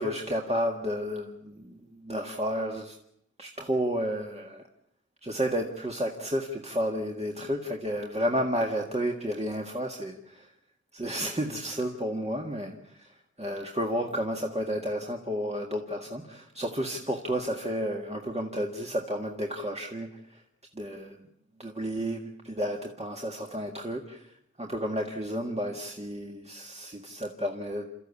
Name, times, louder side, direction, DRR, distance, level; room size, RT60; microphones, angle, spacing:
voice 1, 0.0-3.0 3.4-4.6 5.2-10.5 10.9-20.4 20.7-21.2 21.6-27.9, equal, 20° right, 1 dB, 1.8 m, -32 dB
29.0 x 14.0 x 8.4 m, 0.79 s
wide cardioid pair, 85°, 29 cm